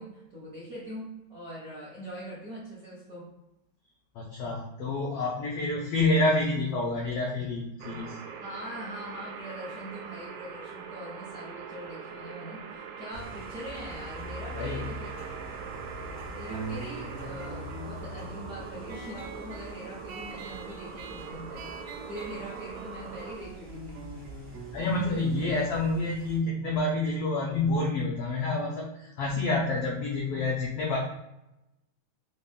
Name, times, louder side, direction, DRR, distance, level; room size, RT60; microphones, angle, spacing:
voice 1, 0.0-3.3 8.4-15.1 16.2-24.0, equal, 55° right, -8 dB, 1.0 m, -42 dB
voice 2, 4.1-8.2 14.5-14.8 24.7-31.0, left 2 dB, 80° left, -2 dB, 1.3 m, -28 dB
sound 1, 7.8-23.4, right 6 dB, 90° right, 2.1 m, -42 dB
sound 2, 13.1-26.4, equal, 25° right, 0.4 m, -45 dB
sound 3, 16.5-27.6, right 3 dB, 75° right, 1.7 m, -44 dB
6.1 x 2.4 x 3.5 m, 0.90 s
omnidirectional pair, 3.6 m